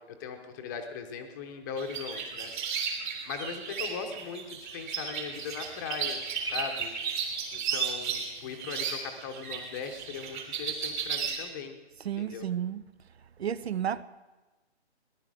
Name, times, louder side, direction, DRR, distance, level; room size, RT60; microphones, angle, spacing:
voice 1, 0.1-2.5 3.3-6.2 6.5-6.9 7.5-11.7 12.2-12.4, left 6 dB, 15° left, 0.8 m, -39 dB
sound 1, 1.8-11.4, right 6 dB, 45° right, 3.7 m, -34 dB
voice 2, 12.0-12.8 13.4-14.0, right 9 dB, 70° right, 0.6 m, -32 dB
18.0 x 11.5 x 4.9 m
hypercardioid pair, 150°, 33 cm